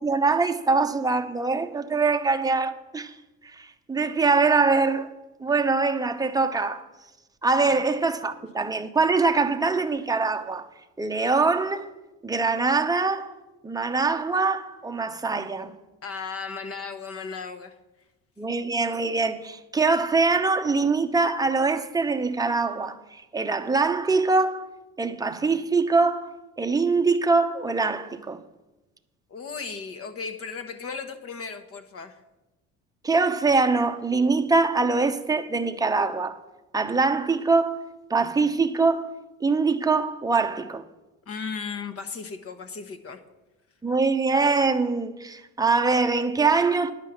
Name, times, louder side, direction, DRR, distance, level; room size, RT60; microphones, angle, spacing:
voice 1, 0.0-3.1 3.4-5.1 5.4-6.8 7.4-10.7 11.0-11.9 12.2-13.3 13.6-15.7 18.4-24.6 25.0-26.3 26.6-28.4 33.0-36.4 36.7-37.8 38.1-39.1 39.4-40.8 43.8-46.9, right 4 dB, 10° right, 0.7 m, -23 dB
voice 2, 16.0-17.7 29.3-32.2 41.3-43.2, left 5 dB, 45° left, 1.2 m, -35 dB
10.5 x 5.5 x 7.7 m
cardioid pair, 95°, 33 cm